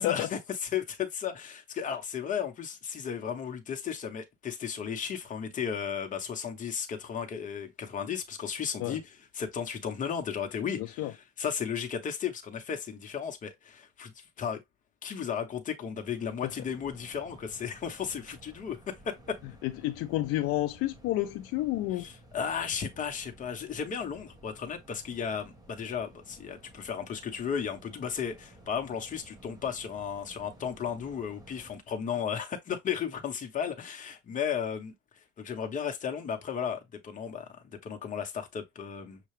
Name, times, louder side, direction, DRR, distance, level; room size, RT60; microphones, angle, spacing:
voice 1, 0.0-14.1 14.4-14.6 15.0-19.4 22.0-34.9 35.4-39.2, left 7 dB, 25° left, 0.9 m, -34 dB
voice 2, 10.8-11.1 19.6-22.1, left 15 dB, 45° left, 0.5 m, -30 dB
sound 1, 15.9-31.8, right 1 dB, 10° right, 1.4 m, -55 dB
6.7 x 2.3 x 3.2 m
cardioid pair, 160°, 31 cm